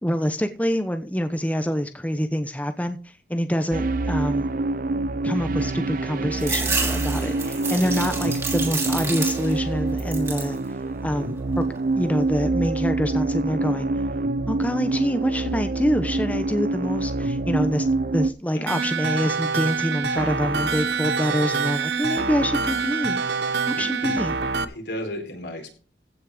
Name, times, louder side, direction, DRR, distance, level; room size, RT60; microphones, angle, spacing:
voice 1, 0.0-3.0 3.3-4.5 5.2-10.6 11.0-11.6 11.9-13.9 14.5-17.9 18.1-24.3, equal, 10° left, 8 dB, 0.9 m, -26 dB
sound 1, 3.7-18.3, right 2 dB, 50° right, 0.5 m, -26 dB
sound 2, 6.4-9.7 10.0-10.6 11.1-11.8, right 4 dB, 15° right, 2.9 m, -29 dB
voice 2, 18.5-18.8 23.7-24.2 24.7-25.7, left 1 dB, 80° left, 3 dB, 4.3 m, -34 dB
sound 3, 18.7-24.6, right 5 dB, 75° right, 1.2 m, -25 dB
15.5 x 6.5 x 5.0 m, 0.36 s
head